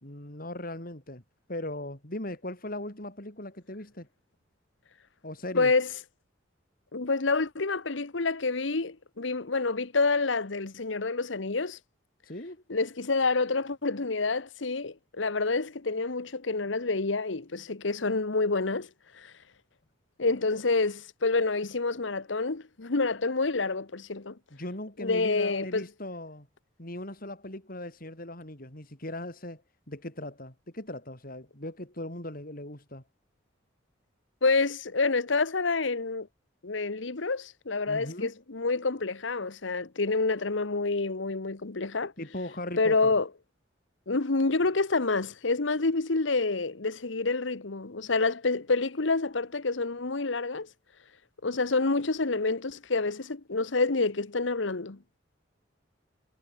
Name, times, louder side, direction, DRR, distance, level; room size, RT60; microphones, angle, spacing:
voice 1, 0.0-1.2 1.5-4.1 5.2-5.7 12.2-12.6 24.5-26.5 26.8-29.6 29.9-33.0 37.9-38.3 42.2-43.0, left 1 dB, 50° left, 5.2 m, -39 dB
voice 2, 5.5-5.9 6.9-11.8 12.7-18.9 19.1-19.3 20.2-24.4 25.0-25.9 34.4-36.3 36.6-42.1 42.8-43.3 44.1-50.7 51.4-55.2, left 3 dB, 80° left, 1.2 m, -28 dB
head